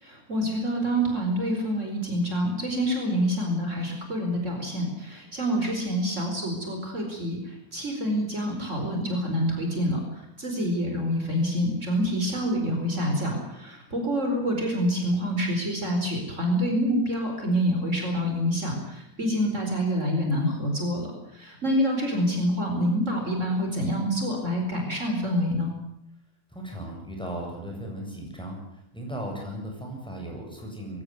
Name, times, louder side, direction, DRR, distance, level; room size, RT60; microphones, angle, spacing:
voice 1, 0.0-21.1 21.3-25.7, equal, 50° right, 2 dB, 4.9 m, -27 dB
voice 2, 26.5-31.0, right 1 dB, 5° left, 0 dB, 7.6 m, -36 dB
22.0 x 16.5 x 9.6 m, 0.84 s
omnidirectional pair, 1.6 m